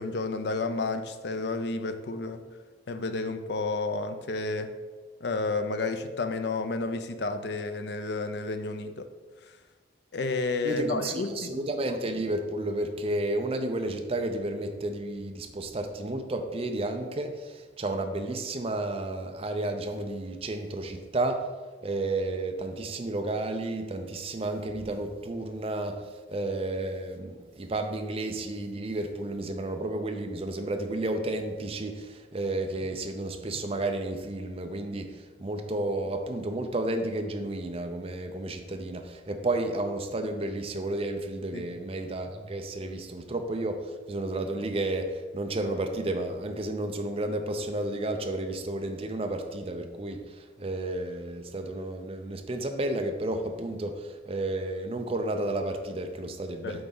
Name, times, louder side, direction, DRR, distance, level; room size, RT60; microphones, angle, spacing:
voice 1, 0.0-2.4 2.9-4.7 5.2-9.1 10.1-11.6 41.5-41.7 56.6-56.8, left 3 dB, 60° left, 8 dB, 0.5 m, -31 dB
voice 2, 10.6-21.5 21.8-56.9, right 2 dB, 30° right, 5 dB, 0.5 m, -32 dB
7.8 x 4.0 x 3.8 m, 1.4 s
head